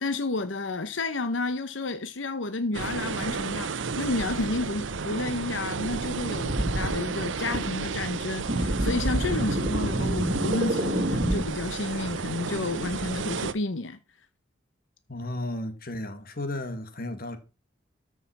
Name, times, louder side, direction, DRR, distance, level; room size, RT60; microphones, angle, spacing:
voice 1, 0.0-14.0, left 2 dB, 85° left, 0.9 m, -31 dB
sound 1, 2.7-13.5, right 4 dB, 85° right, 0.8 m, -32 dB
sound 2, 6.5-7.0 7.5-7.6 8.5-11.4, right 1 dB, 45° right, 2.1 m, -27 dB
voice 2, 15.1-17.4, left 1 dB, 50° left, 1.9 m, -34 dB
13.5 x 5.8 x 5.9 m
head